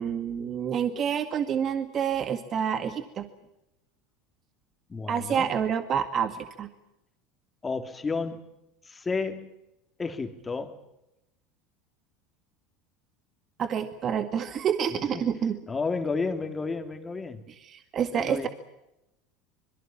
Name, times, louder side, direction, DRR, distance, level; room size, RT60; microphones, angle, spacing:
voice 1, 0.0-3.3 5.1-6.7 13.6-15.6 17.6-18.5, right 8 dB, 40° right, 9 dB, 1.9 m, -28 dB
voice 2, 4.9-5.5 7.6-8.5 8.8-9.5 10.0-10.8 15.1-15.2 15.7-17.4 18.1-18.5, left 4 dB, 20° left, 6 dB, 3.1 m, -31 dB
26.0 x 22.5 x 7.3 m, 0.87 s
hypercardioid pair, 95°, 0 cm